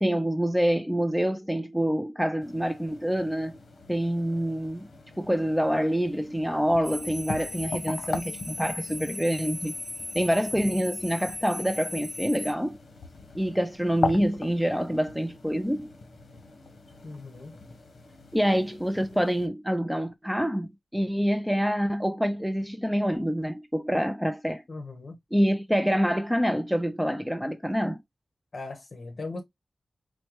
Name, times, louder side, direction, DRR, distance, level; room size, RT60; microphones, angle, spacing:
voice 1, 0.0-3.6 3.9-4.9 5.2-9.7 10.1-12.8 13.3-15.9 18.3-24.6 25.3-28.0, equal, ahead, 0.4 m, -26 dB
sound 1, 2.4-19.5, left 3 dB, 75° left, 0.9 m, -40 dB
sound 2, 6.8-12.5, left 1 dB, 30° left, 1.7 m, -38 dB
voice 2, 17.0-17.5 24.7-25.2 28.5-29.4, left 3 dB, 55° left, 1.1 m, -39 dB
4.3 x 2.1 x 2.9 m
wide cardioid pair, 90°, 0 cm